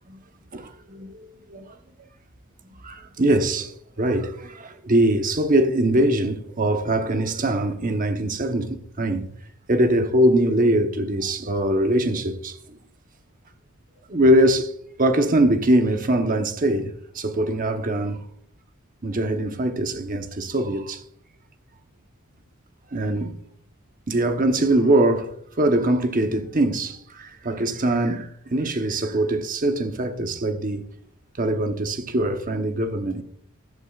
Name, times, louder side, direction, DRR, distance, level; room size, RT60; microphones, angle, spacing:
voice 1, 0.5-1.7 2.8-9.3 9.7-12.8 14.1-14.7 15.0-18.3 19.0-21.0 22.9-23.4 24.1-30.9 31.4-33.2, right 1 dB, 40° right, 1.0 m, -22 dB
14.5 x 11.5 x 2.4 m
head